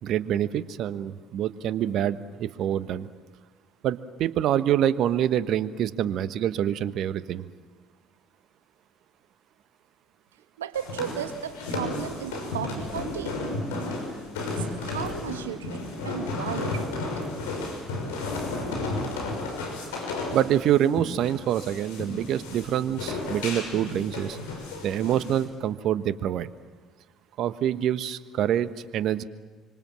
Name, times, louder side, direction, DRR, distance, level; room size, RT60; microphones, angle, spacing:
voice 1, 0.0-3.1 3.8-7.5 20.3-24.4 24.8-26.5 27.4-29.2, right 10 dB, 60° right, 13 dB, 1.2 m, -26 dB
voice 2, 10.6-13.4 14.6-17.1, right 9 dB, 85° right, 8 dB, 1.8 m, -35 dB
sound 1, 10.7-25.4, left 2 dB, 75° left, 6.1 m, -33 dB
26.0 x 25.5 x 7.6 m, 1.4 s
hypercardioid pair, 55°, 0 cm